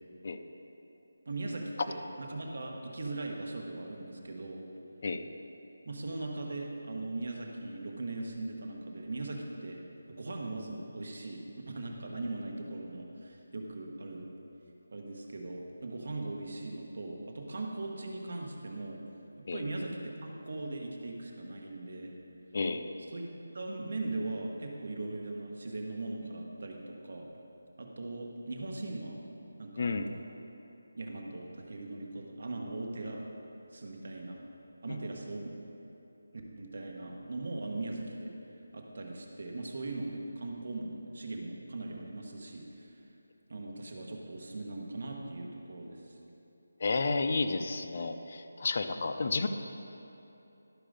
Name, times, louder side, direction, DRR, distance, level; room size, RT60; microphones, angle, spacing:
voice 1, 1.2-4.6 5.8-9.8 10.1-14.3 14.9-19.0 19.5-22.1 23.0-23.3 23.5-27.3 27.8-29.2 29.6-30.0 31.0-33.3 33.7-34.4 34.8-35.6 36.6-38.3 38.7-43.0 43.5-46.2, right 2 dB, 55° right, 1 dB, 1.2 m, -39 dB
voice 2, 22.5-22.9 29.8-30.1 46.8-49.5, left 3 dB, 35° left, 7 dB, 0.4 m, -31 dB
12.0 x 4.8 x 5.1 m, 2.9 s
figure-of-eight pair, 175°, 0 cm